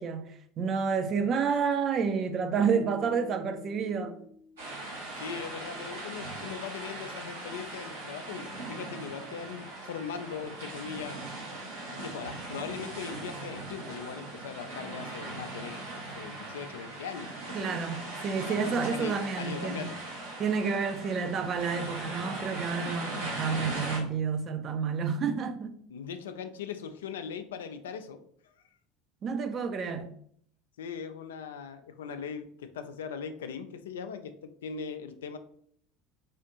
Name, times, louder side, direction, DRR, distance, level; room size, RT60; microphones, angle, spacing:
voice 1, 0.0-4.2 17.5-19.9 20.4-25.7 29.2-30.1, right 5 dB, 40° right, 0.5 m, -30 dB
sound 1, 2.6-5.7, left 3 dB, 20° right, 0.9 m, -51 dB
sound 2, 4.6-24.0, right 2 dB, 75° right, 1.2 m, -39 dB
voice 2, 5.2-11.2 11.9-15.8 16.1-17.7 18.5-20.0 25.9-28.2 30.8-35.4, left 6 dB, 70° left, 0.3 m, -40 dB
4.8 x 2.4 x 2.8 m
figure-of-eight pair, 70°, 0 cm